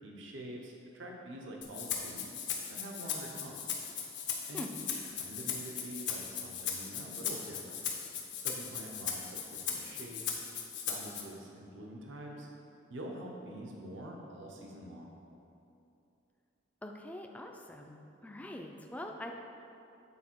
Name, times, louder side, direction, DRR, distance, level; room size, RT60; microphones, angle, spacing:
voice 1, 0.0-2.3 2.7-3.7 4.5-7.8 8.4-10.4 10.7-12.5 12.9-15.2, right 1 dB, 80° right, 0 dB, 0.8 m, -46 dB
Rattle (instrument), 1.6-11.2, left 7 dB, 65° left, 0.8 m, -38 dB
voice 2, 16.8-19.3, left 1 dB, 10° left, 2 dB, 0.3 m, -44 dB
8.4 x 4.2 x 4.5 m, 2.7 s
head